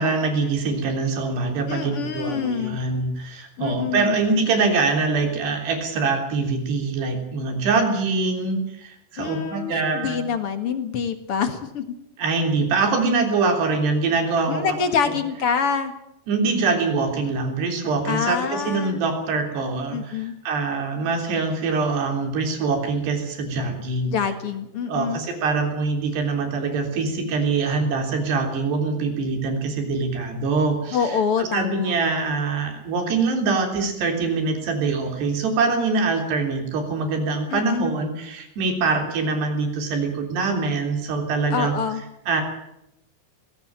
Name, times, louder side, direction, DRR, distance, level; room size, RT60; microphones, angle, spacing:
voice 1, 0.0-10.2 12.2-14.8 15.1-15.2 16.3-24.1 24.9-41.7 42.3-42.4, right 4 dB, 85° right, 4 dB, 5.7 m, -24 dB
voice 2, 1.7-2.8 3.6-4.2 9.2-11.8 14.5-15.9 18.1-19.0 19.9-20.3 24.1-25.2 30.9-31.9 37.5-37.9 41.5-42.0, left 6 dB, 50° left, 8 dB, 1.8 m, -26 dB
20.5 x 16.5 x 8.8 m, 0.80 s
omnidirectional pair, 4.7 m